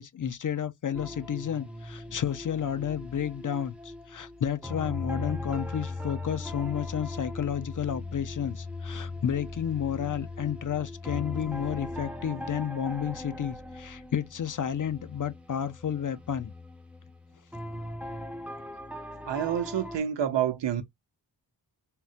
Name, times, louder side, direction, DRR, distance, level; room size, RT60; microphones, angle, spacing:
voice 1, 0.0-16.5, left 8 dB, 45° left, 0.5 m, -31 dB
sound 1, 0.9-20.0, left 2 dB, 5° right, 0.5 m, -39 dB
voice 2, 19.2-20.8, right 9 dB, 75° right, 0.7 m, -28 dB
3.7 x 2.1 x 2.6 m
wide cardioid pair, 100°, 44 cm